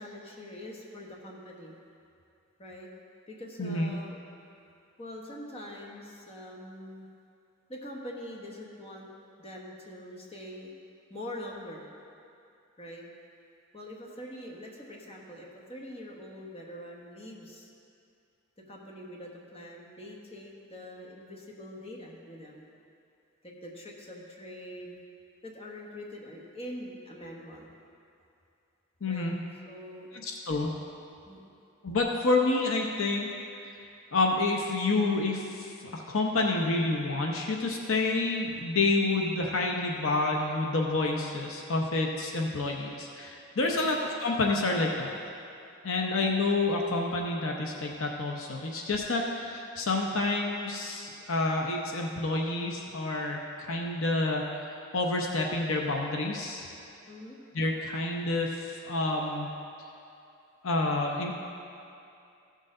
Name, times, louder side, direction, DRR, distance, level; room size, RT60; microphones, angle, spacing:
voice 1, 0.0-1.8 2.6-2.9 3.3-4.2 5.0-7.1 7.7-9.1 9.4-10.7 11.1-11.9 12.8-13.1 13.7-17.7 18.7-22.7 23.4-25.0 25.4-27.7 29.1-29.3 29.6-30.1 31.3-31.4 43.6-43.9 57.1-57.4, left 1 dB, 25° left, -1 dB, 1.1 m, -44 dB
voice 2, 3.6-3.9 29.0-29.3 30.1-30.7 31.8-33.3 33.6-33.9 34.1-45.1 45.8-56.7 57.5-59.5 60.6-61.3, left 2 dB, 65° left, 0 dB, 0.8 m, -29 dB
15.0 x 6.5 x 3.8 m, 2.6 s
head